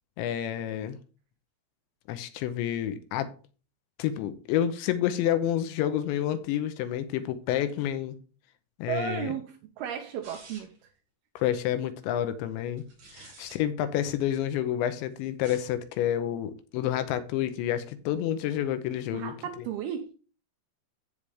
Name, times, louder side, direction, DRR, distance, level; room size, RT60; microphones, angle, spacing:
voice 1, 0.2-1.0 2.1-3.3 4.0-8.2 8.8-9.3 11.4-12.9 13.1-19.3, left 11 dB, 85° left, 3.1 m, -29 dB
voice 2, 8.9-10.9 13.2-13.3 19.1-20.1, right 9 dB, 75° right, 2.3 m, -34 dB
sound 1, 10.2-10.9 12.8-13.6 15.3-15.7, right 3 dB, 40° right, 4.2 m, -50 dB
15.0 x 5.2 x 3.3 m
omnidirectional pair, 5.3 m